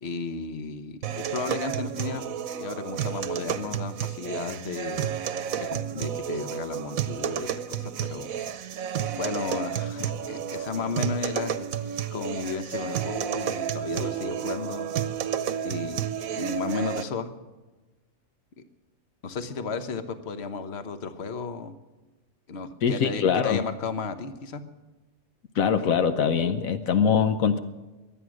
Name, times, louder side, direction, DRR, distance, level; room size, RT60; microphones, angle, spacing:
voice 1, 0.0-2.2 2.6-5.1 5.6-8.3 9.1-11.7 12.1-14.9 15.6-16.0 16.3-17.3 19.2-21.7 22.5-24.6, left 4 dB, 50° left, 10 dB, 1.4 m, -34 dB
sound 1, 1.0-17.0, right 9 dB, 85° right, 1.3 m, -31 dB
voice 2, 22.8-23.6 25.5-27.6, left 7 dB, 80° left, 9 dB, 1.3 m, -23 dB
23.0 x 9.1 x 6.4 m, 1.2 s
omnidirectional pair, 1.4 m